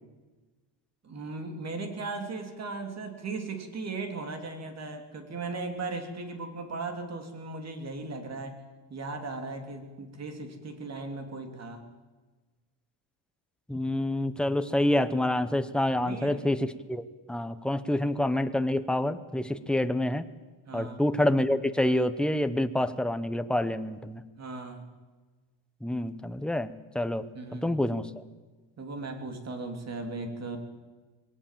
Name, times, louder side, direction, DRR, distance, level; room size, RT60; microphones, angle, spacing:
voice 1, 1.0-8.6 8.9-11.8 16.0-16.4 17.9-18.1 19.6-19.7 20.6-21.0 24.4-24.8 27.3-27.7 28.8-30.6, right 3 dB, 35° right, 6 dB, 3.1 m, -37 dB
voice 2, 13.7-20.2 20.7-24.2 25.8-27.2 27.6-28.1, left 1 dB, ahead, 10 dB, 0.8 m, -27 dB
21.5 x 18.0 x 7.5 m, 1.3 s
cardioid pair, 130°, 47 cm